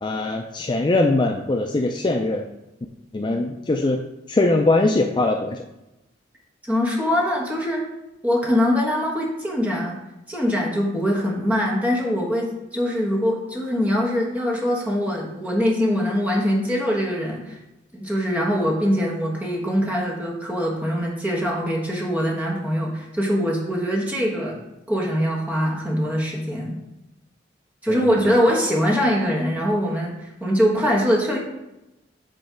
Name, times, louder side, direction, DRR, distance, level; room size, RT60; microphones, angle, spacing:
voice 1, 0.0-2.5 3.1-4.0 4.3-5.6 27.9-28.3, left 2 dB, 25° left, 2 dB, 0.4 m, -21 dB
voice 2, 6.7-7.8 8.2-10.0 10.3-17.5 17.9-24.6 24.9-26.8 27.8-30.1 30.4-31.4, equal, 10° right, -3 dB, 1.3 m, -23 dB
8.1 x 3.1 x 5.0 m, 0.95 s
head